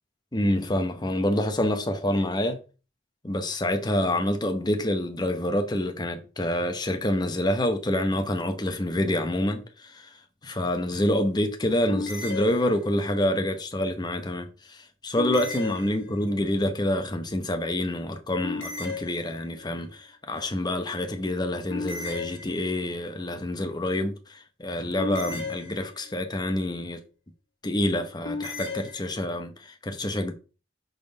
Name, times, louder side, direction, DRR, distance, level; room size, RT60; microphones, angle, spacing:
voice 1, 0.3-2.6 3.2-10.1 10.4-27.0 27.6-30.3, left 1 dB, 20° left, 0.8 m, -27 dB
sound 1, 11.9-13.2 15.2-16.5 18.4-19.7 21.7-23.0 25.0-26.3 28.2-29.2, left 4 dB, 75° left, 1.5 m, -35 dB
5.2 x 3.8 x 5.3 m
head